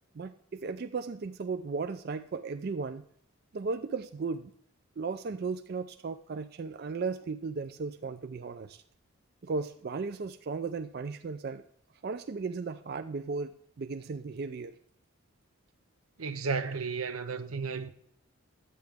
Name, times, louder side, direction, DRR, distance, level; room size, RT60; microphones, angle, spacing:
voice 1, 0.1-3.1 3.5-4.5 5.0-8.8 9.4-11.6 12.0-14.8, right 4 dB, 45° right, 0.4 m, -36 dB
voice 2, 16.2-17.9, right 5 dB, 85° right, 0.8 m, -33 dB
11.0 x 8.8 x 3.5 m
head